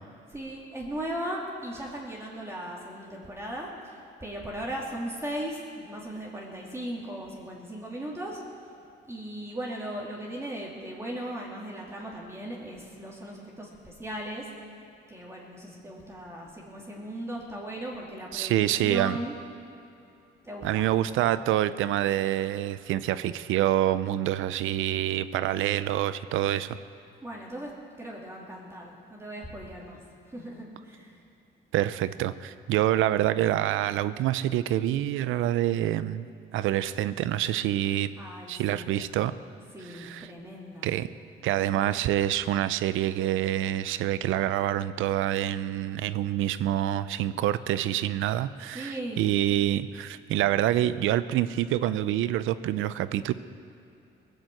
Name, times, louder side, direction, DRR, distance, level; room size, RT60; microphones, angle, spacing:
voice 1, 0.3-8.4 9.1-14.5 15.1-19.4 20.4-20.9 27.2-27.7 28.0-30.0 30.3-31.2 38.2-39.0 39.7-40.9 41.7-42.1 48.7-49.3, right 1 dB, 15° right, -4 dB, 2.6 m, -37 dB
voice 2, 18.3-19.2 20.6-26.8 31.7-36.3 36.5-38.1 38.5-39.3 39.8-40.3 40.8-41.1 41.4-53.3, right 12 dB, 85° right, 15 dB, 0.6 m, -26 dB
18.5 x 7.7 x 7.7 m, 2.7 s
cardioid pair, 90°, 20 cm